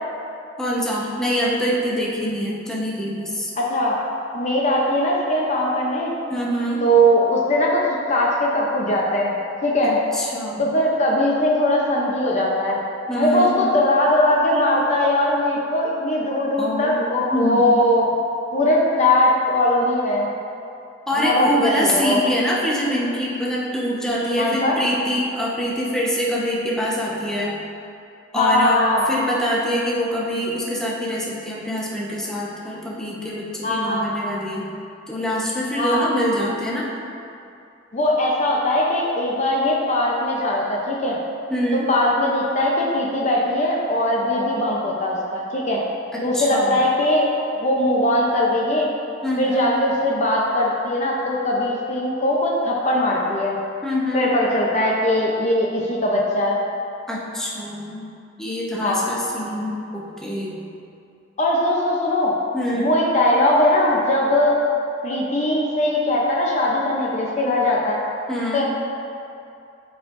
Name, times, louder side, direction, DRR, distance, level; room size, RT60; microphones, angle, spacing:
voice 1, 0.6-3.5 6.3-6.8 10.1-10.6 13.1-13.6 16.6-17.0 17.3-17.6 21.1-27.6 28.3-34.7 35.1-36.9 41.5-41.9 46.1-46.8 49.2-49.7 53.8-54.3 57.1-58.1 58.4-60.7 62.5-62.9 68.3-68.6, equal, 5° left, -6 dB, 1.0 m, -25 dB
voice 2, 3.6-3.9 4.3-6.1 6.8-7.8 8.1-9.3 9.6-10.0 10.6-12.8 13.1-18.1 18.5-20.3 21.2-22.2 24.4-24.8 28.3-29.0 33.6-34.1 35.8-36.1 37.9-41.2 41.7-45.8 46.2-47.3 47.6-48.9 49.4-53.5 54.1-56.6 58.8-59.0 61.4-62.3 62.7-64.6 65.0-68.0 68.5-68.6, left 1 dB, 40° left, -3 dB, 0.7 m, -20 dB
12.0 x 4.6 x 2.6 m, 2.6 s
head